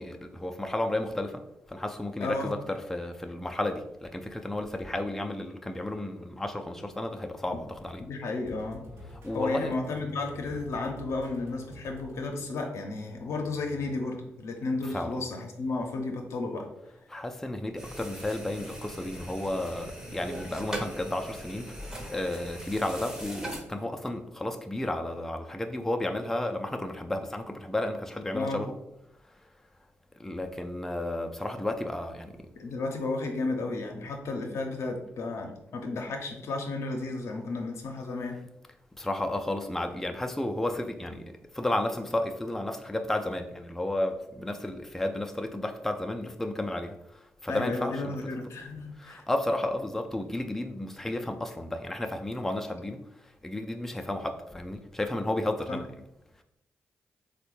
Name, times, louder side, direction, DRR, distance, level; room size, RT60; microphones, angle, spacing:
voice 1, 0.0-8.1 9.1-9.8 14.9-15.1 17.1-21.8 22.0-28.8 30.2-32.5 39.0-48.4 49.0-55.9, left 1 dB, 5° left, 0.3 m, -32 dB
voice 2, 2.2-2.5 7.5-7.6 8.0-8.8 9.3-16.7 28.3-28.6 32.6-38.4 47.5-49.2 55.7-55.8, left 3 dB, 70° left, 0.5 m, -33 dB
sound 1, 8.4-12.6, left 1 dB, 60° right, 0.7 m, -48 dB
sound 2, 17.8-23.6, right 1 dB, 15° right, 0.7 m, -40 dB
3.3 x 2.2 x 3.0 m
supercardioid pair, 55°, 5 cm